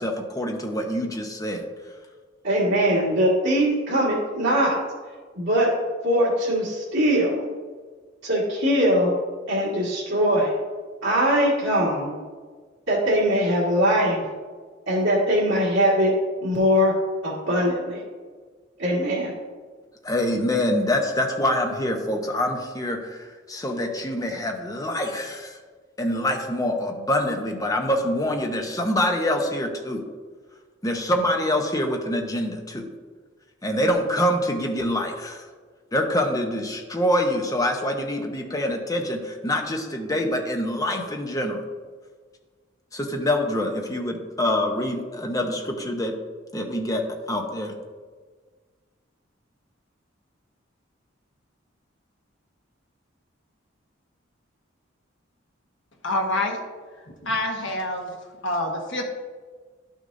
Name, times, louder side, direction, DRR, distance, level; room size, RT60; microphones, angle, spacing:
voice 1, 0.0-1.9 20.0-25.6 26.0-30.0 30.8-32.9 33.6-35.5 35.9-41.6 42.9-46.2 46.5-47.7, left 1 dB, 20° left, 3 dB, 0.9 m, -25 dB
voice 2, 2.4-4.8 5.4-5.7 6.0-7.5 8.2-9.1 9.5-10.5 11.0-12.2 12.9-14.2 14.9-16.1 16.4-16.9 17.2-18.0 18.8-19.3, equal, 70° right, -8 dB, 1.9 m, -21 dB
voice 3, 56.0-56.6 57.2-58.1 58.4-59.0, left 1 dB, 70° left, 1 dB, 1.3 m, -26 dB
11.5 x 6.3 x 2.7 m, 1.5 s
head